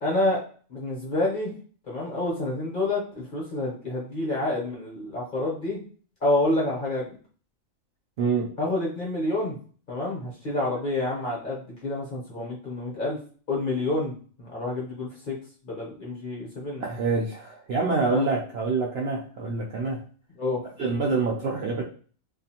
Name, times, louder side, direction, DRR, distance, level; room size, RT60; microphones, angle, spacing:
voice 1, 0.0-0.4 0.7-1.5 1.9-5.8 6.2-7.2 8.6-9.6 9.9-13.2 13.5-14.1 14.4-15.4 15.6-16.8 18.0-18.3 20.3-20.6, left 2 dB, 45° left, -3 dB, 0.8 m, -28 dB
voice 2, 8.2-8.5 16.8-20.0 20.8-21.8, right 4 dB, 65° right, -3 dB, 0.6 m, -26 dB
2.4 x 2.4 x 2.7 m, 0.42 s
omnidirectional pair, 1.4 m